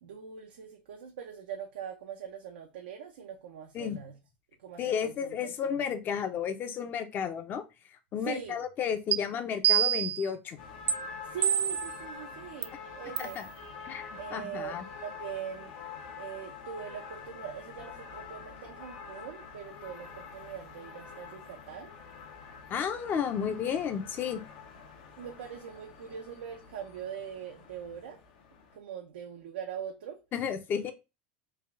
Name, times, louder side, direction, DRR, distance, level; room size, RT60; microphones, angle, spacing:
voice 1, 0.0-4.1 4.6-5.8 8.2-8.6 11.2-13.4 14.1-15.8 16.1-21.9 25.2-28.2 28.7-30.2, right 8 dB, 85° right, 0.6 m, -42 dB
voice 2, 4.8-7.6 8.1-10.6 13.2-13.5 13.9-14.0 14.3-14.8 22.7-24.5 30.3-30.9, left 7 dB, 40° left, 0.7 m, -32 dB
sound 1, 9.1-9.2 9.6-10.3 10.9-11.0 11.4-11.9 12.6-12.7 13.2-13.4, right 10 dB, 35° right, 0.4 m, -26 dB
sound 2, 10.6-28.8, left 5 dB, 70° left, 0.9 m, -46 dB
3.4 x 2.4 x 3.4 m
supercardioid pair, 105°, 5 cm